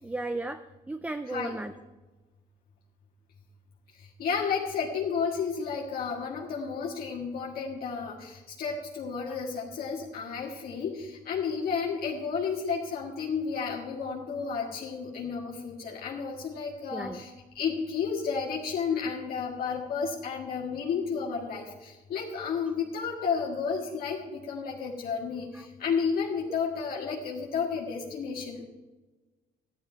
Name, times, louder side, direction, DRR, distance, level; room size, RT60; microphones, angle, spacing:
voice 1, 0.0-1.7 16.9-17.2 25.5-25.6, right 2 dB, 10° right, 10 dB, 0.4 m, -35 dB
voice 2, 1.3-1.6 4.2-17.3 17.6-28.6, left 6 dB, 60° left, -3 dB, 1.8 m, -32 dB
13.0 x 11.0 x 4.5 m, 1.2 s
cardioid pair, 110°, 17 cm